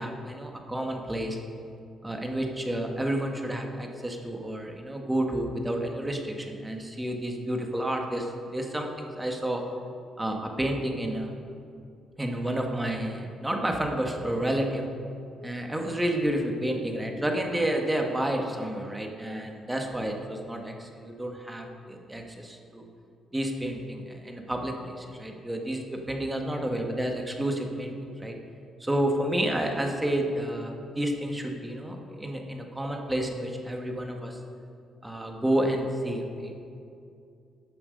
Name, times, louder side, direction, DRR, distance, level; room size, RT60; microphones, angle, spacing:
voice 1, 0.0-1.4 2.0-9.6 10.2-11.3 12.2-14.8 15.4-22.8 23.3-28.4 28.8-34.4 35.0-36.5, right 1 dB, 10° right, 2 dB, 1.6 m, -30 dB
14.0 x 8.6 x 5.3 m, 2.5 s
cardioid pair, 90°, 0 cm